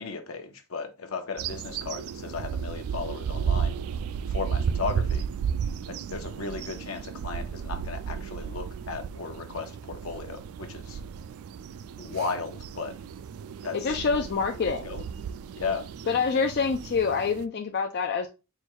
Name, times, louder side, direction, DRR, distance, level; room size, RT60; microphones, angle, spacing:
voice 1, 0.0-3.8 4.3-5.3 5.9-11.0 12.0-12.9 13.6-14.0 14.6-15.0 15.6-15.8, left 4 dB, 75° left, 0.9 m, -35 dB
sound 1, 1.4-17.5, right 7 dB, 80° right, 0.3 m, -33 dB
voice 2, 13.7-14.9 16.1-18.3, left 5 dB, 50° left, 0.4 m, -26 dB
4.5 x 2.3 x 4.4 m
head